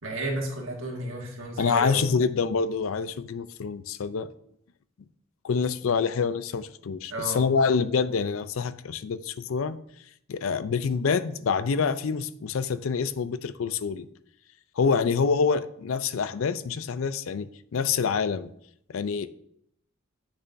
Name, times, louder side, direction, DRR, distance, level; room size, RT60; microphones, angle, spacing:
voice 1, 0.0-2.0 7.1-7.4, right 1 dB, 75° right, 0 dB, 1.7 m, -32 dB
voice 2, 1.6-4.3 5.4-9.8 10.3-14.1 14.8-18.5 18.9-19.3, left 5 dB, 75° left, 14 dB, 0.4 m, -26 dB
7.9 x 6.8 x 2.6 m, 0.69 s
head